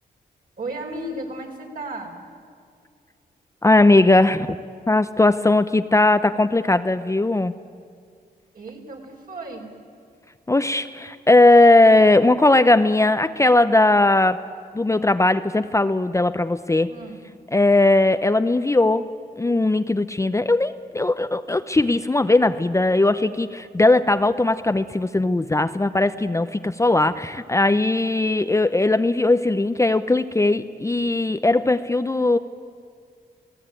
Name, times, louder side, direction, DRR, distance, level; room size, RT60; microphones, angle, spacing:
voice 1, 0.6-2.1 8.5-9.7 16.9-17.2, right 2 dB, 55° right, 1 dB, 4.7 m, -34 dB
voice 2, 3.6-4.6 4.9-7.5 10.5-14.4 14.7-16.9 17.5-19.1 19.4-32.4, left 2 dB, 15° left, 10 dB, 0.7 m, -18 dB
28.5 x 18.0 x 9.0 m, 2.3 s
wide cardioid pair, 100°, 17 cm